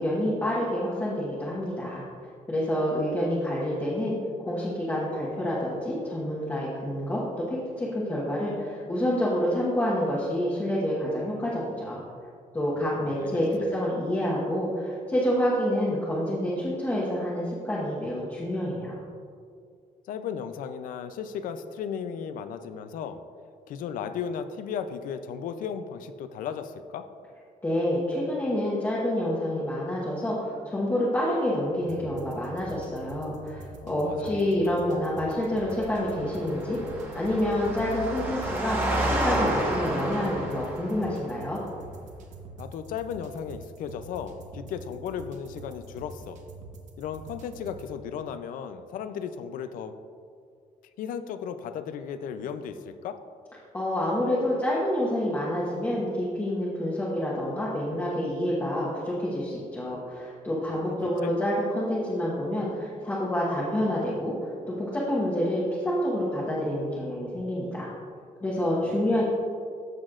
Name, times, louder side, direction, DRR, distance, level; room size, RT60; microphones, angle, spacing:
voice 1, 0.0-2.0 2.5-4.1 4.5-12.0 12.5-19.0 27.6-36.8 37.1-38.8 39.1-41.6 53.7-67.9 68.4-69.2, left 1 dB, 15° left, -8 dB, 1.2 m, -28 dB
voice 2, 12.8-13.4 20.1-23.2 23.7-27.1 33.8-34.4 42.6-46.4 47.0-49.9 51.0-53.2 60.9-61.0 61.2-61.3 68.7-69.1, left 7 dB, 75° left, 10 dB, 0.5 m, -35 dB
sound 1, 31.8-47.9, right 2 dB, 60° right, 1.1 m, -46 dB
Engine, 35.5-41.1, right 1 dB, 15° right, 1.2 m, -30 dB
14.0 x 6.2 x 2.5 m, 2.3 s
cardioid pair, 160°, 14 cm